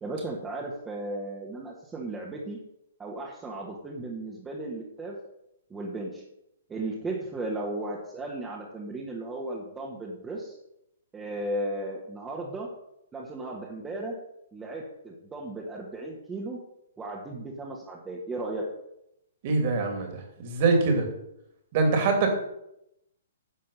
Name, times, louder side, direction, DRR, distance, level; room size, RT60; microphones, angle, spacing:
voice 1, 0.0-2.6 3.0-5.2 5.7-6.2 6.7-10.6 11.1-12.7 13.1-14.2 14.5-16.6 17.0-18.6, right 2 dB, 10° right, -3 dB, 1.9 m, -35 dB
voice 2, 19.4-21.1 21.7-22.3, right 3 dB, 40° right, 3 dB, 3.0 m, -24 dB
11.0 x 7.5 x 5.7 m, 0.82 s
figure-of-eight pair, 120°, 0 cm